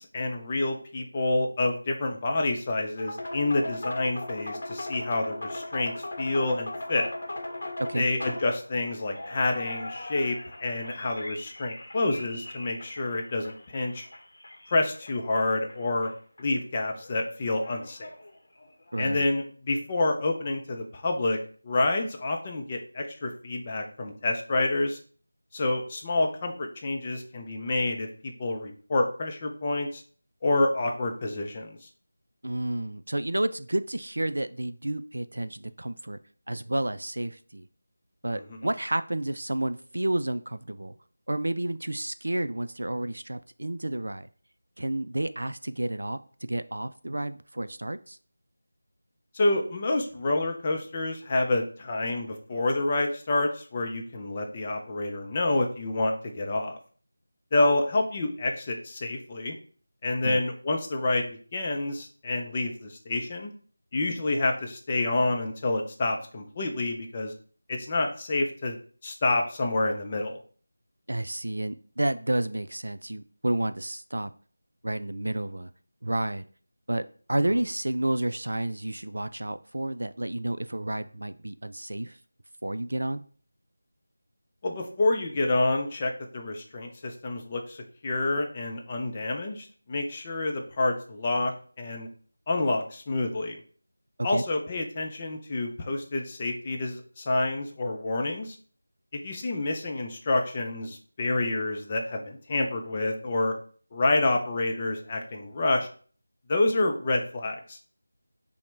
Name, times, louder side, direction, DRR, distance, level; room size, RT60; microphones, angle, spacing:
voice 1, 0.0-7.1 7.9-14.1 14.7-16.1 16.4-18.1 19.0-21.4 21.6-25.0 25.5-30.0 30.4-31.8 38.3-38.6 49.3-56.7 57.5-59.5 60.0-63.5 63.9-67.3 67.7-68.8 69.0-70.4 84.6-91.5 91.8-92.1 92.5-93.6 94.2-98.6 99.2-103.5 103.9-105.9 106.5-107.8, left 2 dB, 25° left, 2 dB, 0.5 m, -28 dB
sound 1, 3.0-16.1 16.4-16.5 17.0-19.0, left 1 dB, 55° left, 0.8 m, -39 dB
voice 2, 18.9-19.3 32.4-36.2 36.5-37.7 38.2-40.9 41.3-44.3 44.8-46.2 46.5-48.2 60.2-60.4 71.1-74.3 74.8-75.7 76.0-76.4 76.9-77.0 77.3-82.2 82.6-83.2 94.2-94.4, right 1 dB, 80° right, 12 dB, 0.3 m, -30 dB
5.7 x 2.1 x 3.2 m, 0.44 s
figure-of-eight pair, 170°, 0 cm